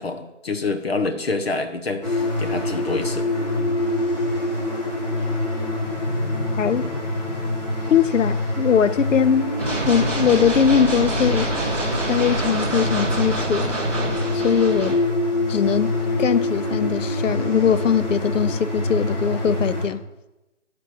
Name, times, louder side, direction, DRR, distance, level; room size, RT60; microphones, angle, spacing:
voice 1, 0.0-3.3 7.8-8.0 14.9-15.0, left 3 dB, 55° left, 0.9 m, -27 dB
sound 1, 2.0-19.9, left 1 dB, 35° left, 1.8 m, -25 dB
voice 2, 6.6-6.9 7.9-9.6 9.9-11.7 12.1-13.8 14.3-15.0 15.5-20.0, left 7 dB, 90° left, 0.6 m, -21 dB
sound 2, 9.6-15.0, right 2 dB, 10° left, 0.7 m, -27 dB
9.4 x 5.1 x 5.8 m
hypercardioid pair, 170°, 37 cm